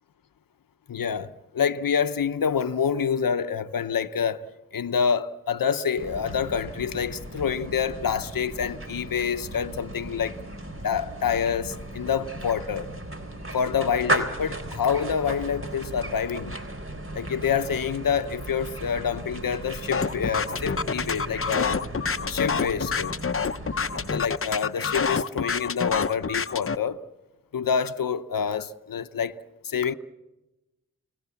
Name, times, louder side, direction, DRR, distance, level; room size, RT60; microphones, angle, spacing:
voice 1, 0.9-4.5 4.7-10.4 10.8-12.9 13.5-16.6 17.1-21.8 22.3-23.1 24.0-27.0 27.5-29.9, left 7 dB, 85° left, 0.8 m, -27 dB
sound 1, 6.0-24.6, right 1 dB, 40° right, 3.6 m, -36 dB
sound 2, 19.9-26.8, left 5 dB, 40° left, 0.8 m, -27 dB
30.0 x 18.5 x 7.1 m
cardioid pair, 55°, 33 cm